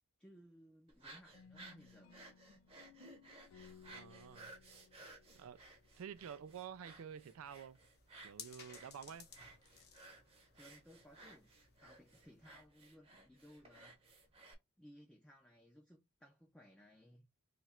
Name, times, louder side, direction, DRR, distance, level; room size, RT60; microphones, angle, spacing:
voice 1, 0.2-2.2 5.3-5.5 10.5-11.5 11.8-14.0 14.8-17.3, equal, 5° left, 0.5 m, -61 dB
sound 1, 0.9-14.5, right 2 dB, 25° right, 0.8 m, -59 dB
sound 2, 1.3-6.2, left 7 dB, 65° left, 0.3 m, -63 dB
voice 2, 3.9-4.5 5.3-5.6 6.0-7.8 8.2-9.3, right 8 dB, 70° right, 0.3 m, -50 dB
sound 3, 4.5-12.7, left 7 dB, 50° left, 0.8 m, -61 dB
3.0 x 2.4 x 4.2 m
head